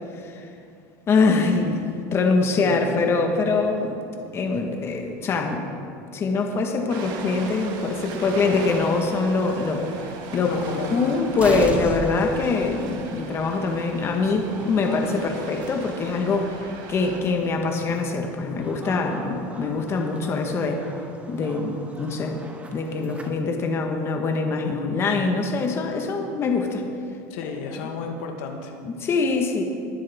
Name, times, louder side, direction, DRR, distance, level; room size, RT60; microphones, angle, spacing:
voice 1, 1.1-1.8 2.1-4.0 4.3-5.6 6.1-10.5 10.9-20.8 21.3-22.5 22.7-26.9 28.8-29.6, left 4 dB, 30° left, 3 dB, 1.3 m, -24 dB
voice 2, 2.6-3.1 10.4-11.0 27.3-28.7, left 5 dB, 70° left, 4 dB, 1.4 m, -33 dB
Ocean, 6.9-17.2, right 4 dB, 55° right, 1.7 m, -38 dB
sound 1, 8.1-8.2 9.1-9.2 9.5-9.6 10.8-10.9 11.3-23.3, right 2 dB, 15° right, 1.2 m, -39 dB
22.0 x 7.7 x 3.5 m, 2.5 s
supercardioid pair, 125°, 8 cm